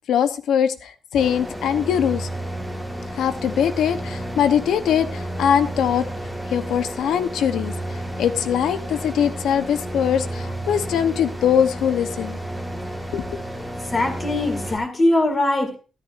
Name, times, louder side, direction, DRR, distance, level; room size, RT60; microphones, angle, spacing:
voice 1, 0.1-2.3 3.1-6.1 6.5-12.4 13.1-13.4, left 8 dB, 85° left, 10 dB, 1.0 m, -22 dB
sound 1, 1.2-14.8, right 1 dB, 5° left, 1.7 m, -31 dB
voice 2, 13.9-15.8, left 1 dB, 25° left, 4 dB, 2.5 m, -21 dB
13.0 x 13.0 x 2.6 m, 0.33 s
wide cardioid pair, 175°, 0 cm